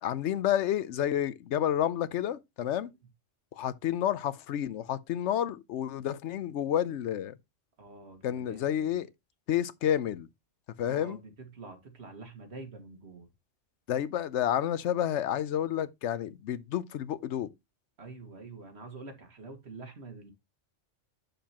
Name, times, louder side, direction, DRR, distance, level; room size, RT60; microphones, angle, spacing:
voice 1, 0.0-2.9 3.6-7.4 8.2-9.1 9.5-10.3 10.8-11.2 13.9-17.5, left 10 dB, 75° left, 0.9 m, -30 dB
voice 2, 7.8-8.9 10.8-13.3 18.0-20.3, right 3 dB, 60° right, 2.0 m, -46 dB
7.8 x 6.8 x 2.9 m
omnidirectional pair, 1.2 m